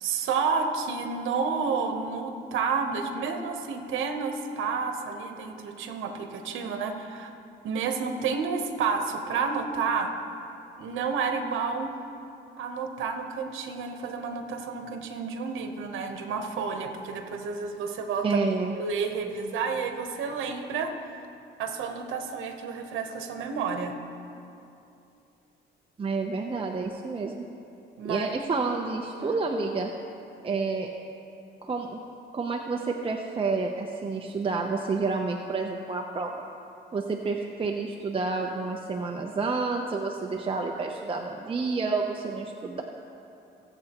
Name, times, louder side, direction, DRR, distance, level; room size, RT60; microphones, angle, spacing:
voice 1, 0.0-7.3 7.6-10.1 10.8-11.9 12.6-18.4 18.7-21.3 21.6-24.0 28.0-28.3 29.2-29.3, right 5 dB, 90° right, 5 dB, 1.0 m, -30 dB
voice 2, 18.2-18.7 26.0-27.4 28.0-29.9 30.4-30.9 31.6-32.0 32.3-36.3 36.9-42.8, right 4 dB, 25° right, 2 dB, 0.7 m, -29 dB
22.5 x 7.8 x 3.0 m, 2.7 s
cardioid pair, 90°, 20 cm